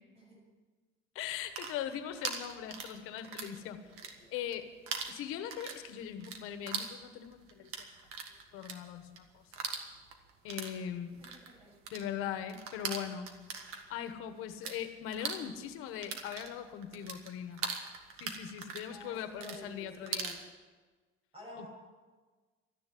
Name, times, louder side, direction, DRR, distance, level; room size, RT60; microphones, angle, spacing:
voice 1, 1.1-3.8 4.3-4.7 5.1-7.9 8.5-9.4 10.4-11.2 11.9-13.3 13.9-17.6 18.2-20.3 21.6-21.7, left 9 dB, 85° left, 9 dB, 1.2 m, -40 dB
sound 1, 1.3-3.6 3.9-4.6 4.9-14.8 15.1-20.4, right 6 dB, 85° right, 1.8 m, -41 dB
voice 2, 2.9-3.5 4.2-4.3 11.2-11.7 18.9-20.4 21.3-21.7, left 1 dB, 25° right, -2 dB, 6.9 m, -51 dB
13.5 x 10.5 x 9.2 m, 1.4 s
cardioid pair, 160°, 21 cm